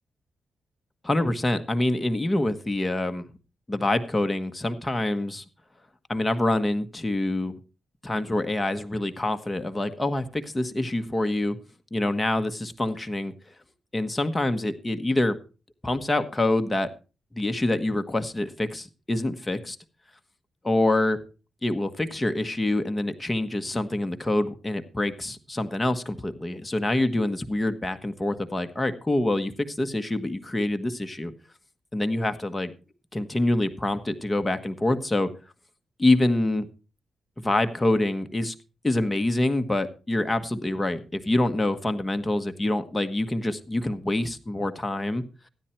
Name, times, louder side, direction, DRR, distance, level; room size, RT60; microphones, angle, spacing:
voice 1, 1.0-3.3 3.7-5.4 6.1-7.5 8.0-11.6 11.9-13.3 13.9-15.4 15.8-16.9 17.3-19.8 20.6-21.2 21.6-31.3 31.9-32.7 33.1-35.3 36.0-36.7 37.4-38.5 38.8-45.2, left 1 dB, 20° left, 8 dB, 1.4 m, -26 dB
15.0 x 10.0 x 4.5 m, 0.33 s
cardioid pair, 75°, 0 cm